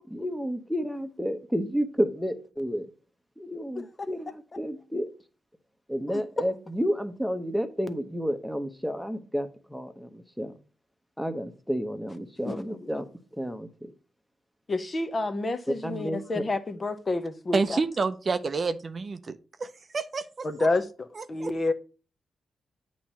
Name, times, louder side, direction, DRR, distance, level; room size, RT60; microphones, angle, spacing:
voice 1, 0.1-2.9 3.4-5.1 5.9-10.5 11.2-13.1 13.4-13.7 15.8-16.4, equal, ahead, 1.0 m, -31 dB
voice 2, 12.4-12.8 14.7-17.8 20.4-21.7, left 2 dB, 35° left, 0.8 m, -29 dB
voice 3, 17.5-19.3 19.6-20.7 21.2-21.5, right 4 dB, 45° right, 0.5 m, -29 dB
8.4 x 3.1 x 5.5 m
cardioid pair, 85°, 0 cm